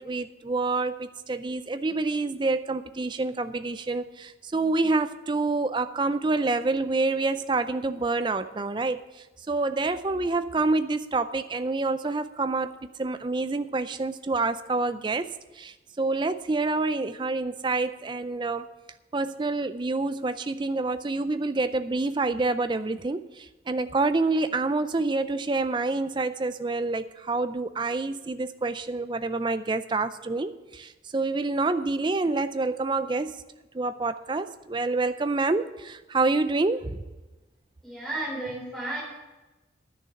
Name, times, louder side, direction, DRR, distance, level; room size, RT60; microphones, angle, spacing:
voice 1, 0.0-9.0 9.5-12.7 13.0-15.3 15.6-18.7 19.1-33.4 33.7-37.0, right 3 dB, 25° right, 11 dB, 0.4 m, -27 dB
voice 2, 37.8-39.0, right 2 dB, ahead, -5 dB, 3.7 m, -33 dB
11.0 x 6.6 x 8.5 m, 1.1 s
head